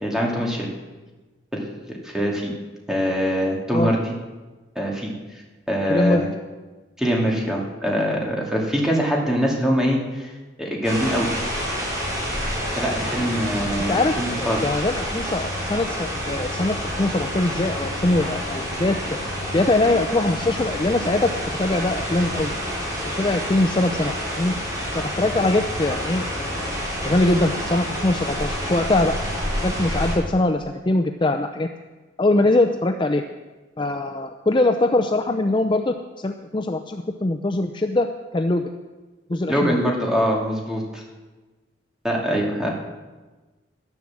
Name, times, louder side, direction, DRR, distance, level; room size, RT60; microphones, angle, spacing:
voice 1, 0.0-0.7 1.5-2.5 2.9-4.1 4.8-5.1 5.7-6.3 7.0-10.3 10.6-11.3 12.8-14.6 39.5-41.0 42.0-42.7, equal, 5° right, -2 dB, 2.5 m, -23 dB
voice 2, 5.9-6.2 13.9-19.0 19.5-21.3 21.6-22.5 23.0-24.5 24.9-26.8 27.0-29.2 29.6-31.7 32.2-33.2 33.8-38.1 38.3-38.7 39.3-39.8, left 2 dB, 25° left, 6 dB, 0.6 m, -22 dB
sound 1, 10.8-30.1, equal, 20° right, 4.6 m, -28 dB
12.0 x 11.0 x 7.5 m, 1.2 s
head